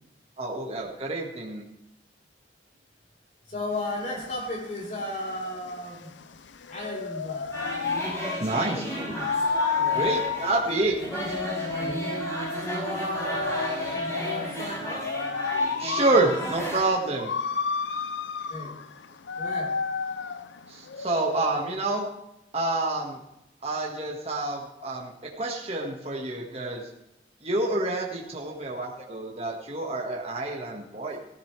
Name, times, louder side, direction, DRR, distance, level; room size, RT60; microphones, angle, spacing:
voice 1, 0.4-1.6 8.4-8.9 9.9-10.9 15.8-17.3 20.7-22.1 22.5-23.2 23.6-26.8 27.4-31.2, right 2 dB, 35° right, -1 dB, 1.8 m, -28 dB
voice 2, 3.5-6.1 6.7-7.6 8.6-9.3 9.7-10.2 11.8-12.1 12.6-15.2 18.5-18.8 19.4-19.8, left 1 dB, 40° left, -3 dB, 4.1 m, -35 dB
sound 1, 3.7-21.8, left 5 dB, 85° left, 0.6 m, -32 dB
sound 2, 7.5-16.8, equal, 15° left, 4.9 m, -34 dB
15.5 x 14.0 x 3.4 m, 0.84 s
head